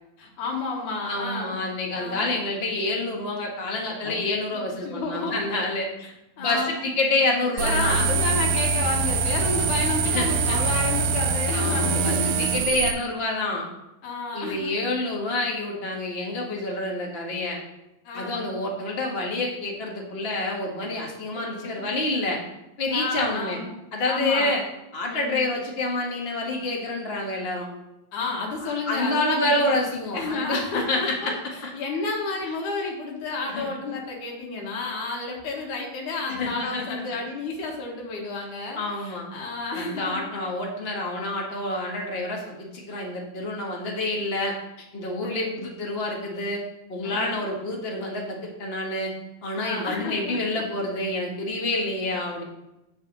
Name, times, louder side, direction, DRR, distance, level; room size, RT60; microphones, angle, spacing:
voice 1, 0.2-1.6 1.9-2.4 4.0-4.2 4.5-5.6 6.0-6.7 7.5-12.8 14.0-14.7 18.0-18.5 21.3-21.9 22.9-23.7 24.0-24.6 25.1-25.5 28.1-29.8 30.1-31.3 31.7-40.3 45.2-45.6 47.0-47.4 49.6-50.4, left 3 dB, 80° left, -1 dB, 3.2 m, -31 dB
voice 2, 1.1-5.9 6.4-8.1 10.0-10.6 11.5-13.7 14.3-17.6 18.1-22.4 22.8-23.6 23.9-24.6 24.9-27.7 28.6-31.3 31.6-31.7 33.5-33.8 36.3-37.2 38.8-39.3 39.7-44.5 44.9-46.6 46.9-49.1 49.4-52.4, left 2 dB, 30° left, -1 dB, 1.1 m, -28 dB
sound 1, 7.6-12.9, right 4 dB, 85° right, 2.2 m, -24 dB
7.8 x 4.8 x 7.1 m, 0.93 s
omnidirectional pair, 3.5 m